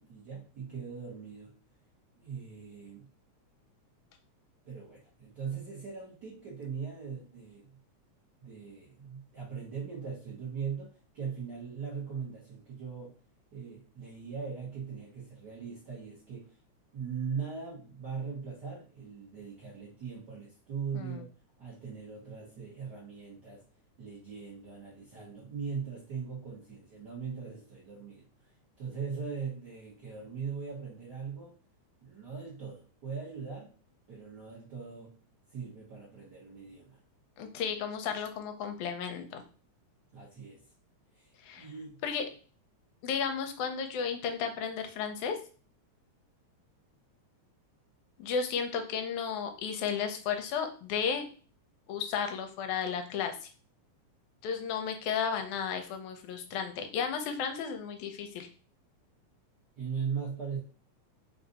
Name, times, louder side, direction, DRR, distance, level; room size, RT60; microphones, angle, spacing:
voice 1, 0.0-1.5 2.2-3.1 4.6-7.8 8.4-13.1 13.5-16.5 16.9-21.3 21.6-23.6 24.0-28.3 28.8-31.6 32.0-33.7 34.1-35.1 35.5-37.0 40.1-40.6 41.1-42.0 59.8-60.6, right 6 dB, 50° right, -6 dB, 1.3 m, -40 dB
voice 2, 37.4-39.4 41.4-41.7 42.0-42.2 43.0-45.4 48.2-51.3 51.9-53.5 54.4-58.5, left 6 dB, 80° left, 6 dB, 2.0 m, -33 dB
4.8 x 2.6 x 3.9 m, 0.39 s
omnidirectional pair, 3.4 m